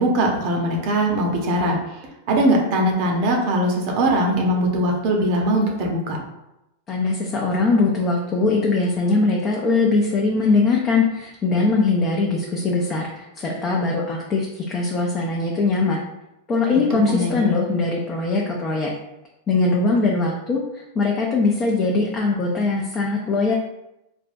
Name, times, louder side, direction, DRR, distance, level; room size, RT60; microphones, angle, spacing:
voice 1, 0.0-1.8 2.3-6.2 16.7-17.5, right 1 dB, 55° right, 1 dB, 0.7 m, -21 dB
voice 2, 6.9-16.0 16.5-18.9 19.5-20.6 21.0-23.5, left 3 dB, 30° left, -2 dB, 0.5 m, -21 dB
3.4 x 2.1 x 2.6 m, 0.90 s
hypercardioid pair, 105°, 0 cm